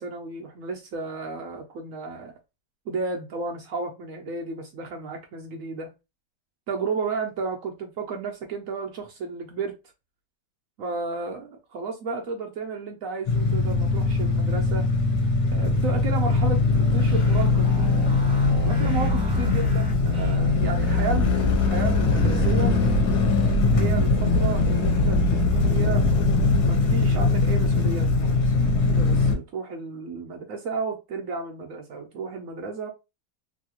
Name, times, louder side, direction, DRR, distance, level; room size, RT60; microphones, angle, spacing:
voice 1, 0.0-2.3 2.9-5.9 6.7-9.7 10.8-14.9 15.5-17.8 18.6-22.7 23.7-26.0 26.7-28.6 28.9-32.9, right 4 dB, 70° right, 0.8 m, -33 dB
sound 1, 13.3-29.3, left 3 dB, 65° left, 1.4 m, -21 dB
sound 2, 16.2-20.7, right 2 dB, 5° right, 0.6 m, -42 dB
3.1 x 2.7 x 2.8 m
omnidirectional pair, 1.9 m